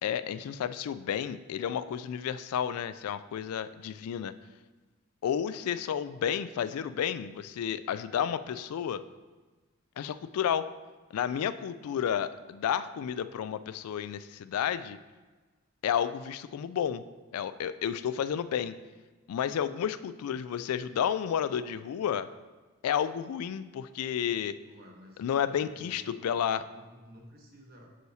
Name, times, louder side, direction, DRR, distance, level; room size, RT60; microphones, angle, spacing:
voice 1, 0.0-4.3 5.2-9.0 10.0-10.7 11.1-15.0 15.8-17.0 17.3-18.8 19.3-22.3 22.8-24.5 25.2-26.6, left 8 dB, 85° left, 13 dB, 0.3 m, -31 dB
voice 2, 24.7-25.2 25.5-27.9, equal, 45° right, 0 dB, 1.1 m, -52 dB
6.7 x 6.2 x 2.7 m, 1.3 s
head